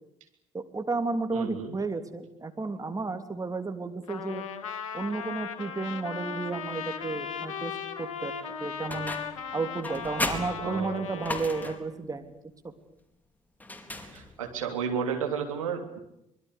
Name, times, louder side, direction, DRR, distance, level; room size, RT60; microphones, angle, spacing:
voice 1, 0.5-4.4 4.9-8.3 8.6-9.1 9.5-12.3 12.6-12.7, right 3 dB, 20° right, 8 dB, 3.3 m, -32 dB
voice 2, 1.3-1.7 10.6-11.2 14.1-16.0, right 7 dB, 80° right, 3 dB, 3.3 m, -32 dB
Trumpet, 4.1-11.8, left 7 dB, 75° left, 2.1 m, -37 dB
sound 1, 8.9-9.4 9.8-11.9 13.6-14.5, left 1 dB, 10° left, 4.3 m, -35 dB
25.0 x 22.0 x 8.4 m, 0.80 s
figure-of-eight pair, 55°, 17 cm